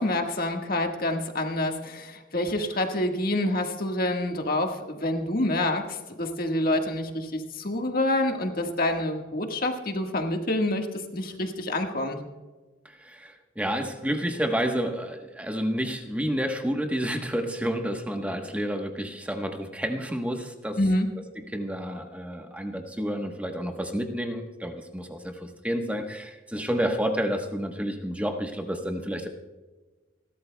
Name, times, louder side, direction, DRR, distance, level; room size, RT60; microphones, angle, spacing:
voice 1, 0.0-10.9 11.1-12.2 20.8-21.1, left 1 dB, 50° left, 3 dB, 1.6 m, -27 dB
voice 2, 12.8-20.8 21.3-29.3, equal, 5° right, 4 dB, 1.1 m, -30 dB
30.0 x 12.5 x 2.3 m, 1.2 s
head